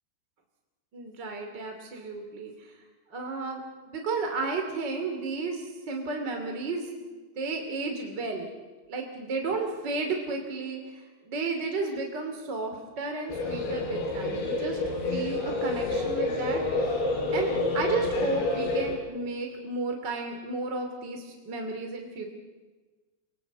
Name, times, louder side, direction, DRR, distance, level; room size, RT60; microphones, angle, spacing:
voice 1, 0.9-2.8 3.1-3.6 3.9-8.5 8.9-16.6 17.3-22.3, right 3 dB, 30° right, 3 dB, 2.5 m, -33 dB
sound 1, 13.3-19.0, left 2 dB, 85° left, 6.3 m, -28 dB
29.5 x 24.5 x 8.2 m, 1.3 s
omnidirectional pair, 5.1 m